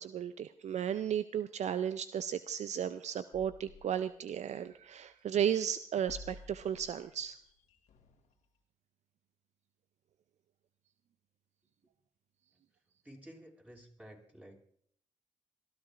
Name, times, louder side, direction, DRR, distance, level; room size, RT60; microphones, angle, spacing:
voice 1, 0.0-7.4, right 9 dB, 65° right, 13 dB, 0.5 m, -34 dB
sound 1, 3.3-4.9 5.3-8.3, left 4 dB, 80° left, 2.2 m, -54 dB
voice 2, 13.0-14.7, equal, 10° right, 0 dB, 6.3 m, -53 dB
27.5 x 13.5 x 2.5 m, 0.64 s
supercardioid pair, 45°, 13 cm